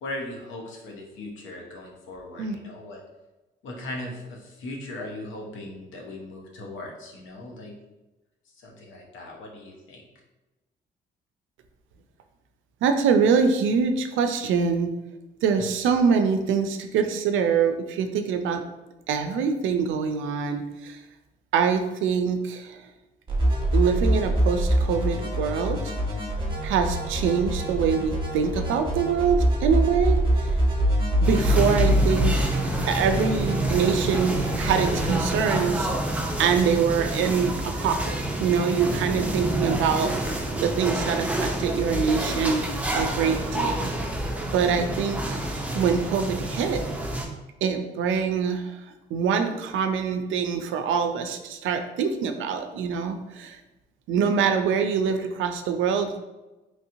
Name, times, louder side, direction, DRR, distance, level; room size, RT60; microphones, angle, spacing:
voice 1, 0.0-3.0 3.6-7.7 8.4-10.1 15.6-15.7, left 1 dB, 75° left, 0 dB, 0.8 m, -38 dB
voice 2, 12.8-14.9 15.4-18.6 19.1-21.0 21.5-22.8 23.7-25.8 26.6-30.5 31.2-32.5 32.9-36.1 36.4-40.1 40.6-42.6 42.9-43.9 44.5-46.8 47.6-48.8 49.1-53.6 54.1-56.2, right 6 dB, 80° right, 7 dB, 0.4 m, -24 dB
sound 1, 23.3-35.3, equal, 25° right, 1.0 m, -25 dB
sound 2, 31.2-47.3, right 1 dB, 5° right, 0.5 m, -28 dB
3.1 x 2.8 x 2.6 m, 1.1 s
cardioid pair, 90°, 20 cm